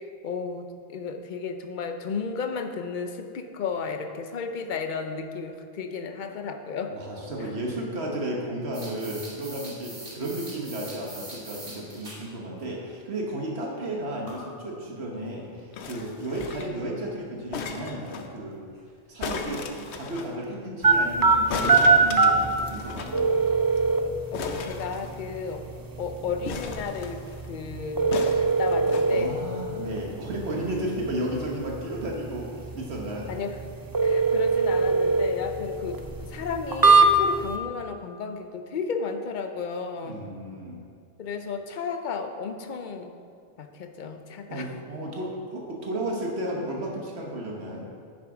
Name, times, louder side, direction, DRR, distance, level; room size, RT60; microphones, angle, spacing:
voice 1, 0.2-0.6 0.9-6.9 7.4-7.5 24.3-25.6 26.0-27.2 27.5-28.1 28.4-29.4 33.3-33.6 34.0-40.2 41.2-43.1 43.6-44.7, left 5 dB, 50° left, 6 dB, 0.8 m, -33 dB
voice 2, 6.9-18.6 19.1-23.3 29.1-33.3 40.0-40.8 44.5-47.9, right 1 dB, 75° right, -1 dB, 1.5 m, -33 dB
sound 1, 8.7-12.2 12.6-12.7 14.3-14.4 15.6-15.7 18.8-18.9 19.1-19.2 19.7-19.8 20.3-20.4 20.9-21.0, right 1 dB, 55° right, 2.4 m, -42 dB
sound 2, 15.7-16.8 17.5-18.3 19.2-20.3 21.5-23.2 23.5-23.6 23.8-23.9 24.3-25.5 26.4-27.4 28.1-29.1 29.8-29.9, left 4 dB, 85° left, 1.0 m, -36 dB
sound 3, 20.8-37.6, right 3 dB, 30° right, 0.4 m, -24 dB
10.5 x 6.3 x 4.9 m, 2.2 s
omnidirectional pair, 1.1 m